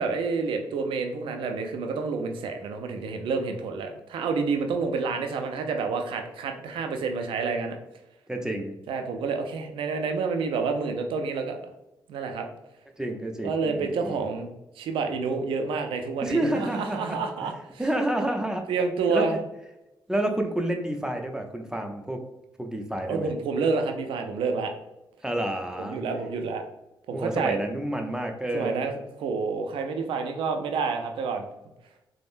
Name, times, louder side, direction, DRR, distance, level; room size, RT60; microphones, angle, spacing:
voice 1, 0.0-7.8 8.9-11.6 12.1-12.5 13.4-17.5 18.7-19.4 23.1-24.7 25.8-26.6 27.1-27.6 28.5-31.5, right 4 dB, 85° right, 5 dB, 0.3 m, -28 dB
voice 2, 8.3-8.8 13.0-14.3 16.2-17.5 17.8-18.7 19.1-19.4 20.1-22.2 22.6-23.3 25.2-26.0 27.1-28.9, right 1 dB, 5° right, 3 dB, 0.5 m, -29 dB
3.4 x 2.0 x 2.5 m, 0.92 s
cardioid pair, 60°, 9 cm